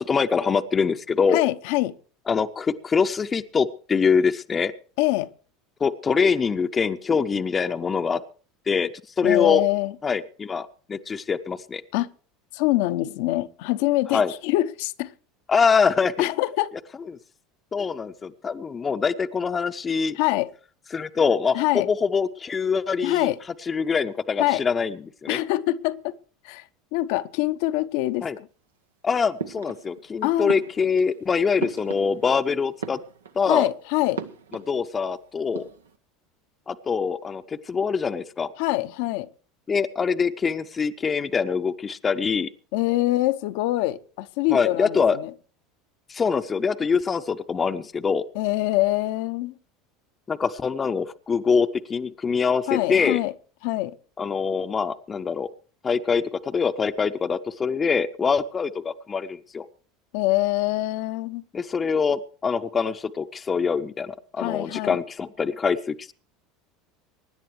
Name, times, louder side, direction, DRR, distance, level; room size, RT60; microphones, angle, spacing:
voice 1, 0.0-1.4 2.3-4.7 5.8-8.2 8.7-8.9 9.2-9.6 10.0-11.8 14.1-14.3 15.5-16.2 17.7-20.2 20.9-23.3 23.7-25.4 28.2-28.4 29.0-33.0 33.4-33.7 34.5-35.6 36.7-38.5 39.7-42.5 44.5-45.2 46.1-48.2 50.3-53.2 54.2-55.5 55.8-59.7 61.5-66.1, left 5 dB, 25° left, 0.7 m, -24 dB
voice 2, 1.3-1.9 5.0-5.3 9.2-9.9 11.9-12.1 12.5-15.1 16.2-16.7 20.2-20.5 21.5-21.9 23.0-23.4 24.4-24.6 25.3-26.1 26.4-26.6 26.9-28.5 30.2-30.5 33.5-34.2 38.6-39.3 42.7-45.3 48.3-49.5 52.7-53.3 53.6-53.9 60.1-61.4 64.4-65.0, left 17 dB, 60° left, 0.8 m, -24 dB
sound 1, 29.4-30.1 30.5-32.4 32.7-33.5 34.1-35.1 35.4-36.0, right 6 dB, 80° right, 0.9 m, -37 dB
24.5 x 11.0 x 3.2 m
figure-of-eight pair, 75°, 0 cm